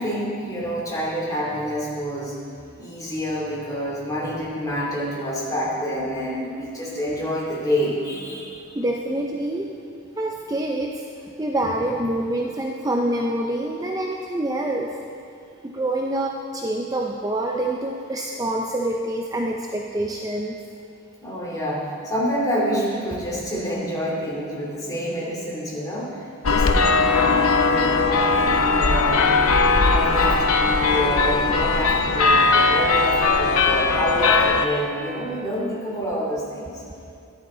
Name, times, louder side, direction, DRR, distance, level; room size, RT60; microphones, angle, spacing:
voice 1, 0.0-2.3 2.8-8.6 21.2-29.3 29.8-36.8, equal, 15° left, -5 dB, 2.7 m, -27 dB
voice 2, 8.7-9.7 10.2-11.1 11.4-15.0 15.6-20.6, right 1 dB, 15° right, 0 dB, 0.5 m, -26 dB
sound 1, 26.4-34.7, left 4 dB, 80° left, 0.7 m, -19 dB
14.0 x 11.0 x 3.9 m, 2.5 s
head